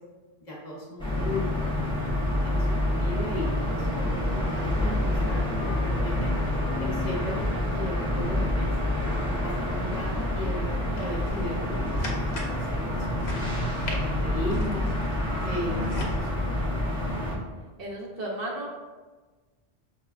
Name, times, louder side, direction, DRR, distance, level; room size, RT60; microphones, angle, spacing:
voice 1, 0.5-6.3 6.8-8.7 9.2-12.3 12.7-14.9 15.4-16.8, left 1 dB, 45° left, -5 dB, 0.9 m, -36 dB
sound 1, 1.0-17.4, left 1 dB, 5° left, 0.5 m, -27 dB
sound 2, 11.0-16.2, left 2 dB, 80° left, 0.9 m, -38 dB
voice 2, 17.8-18.7, right 1 dB, 60° right, -3 dB, 0.9 m, -33 dB
5.8 x 2.2 x 2.4 m, 1.3 s
omnidirectional pair, 1.1 m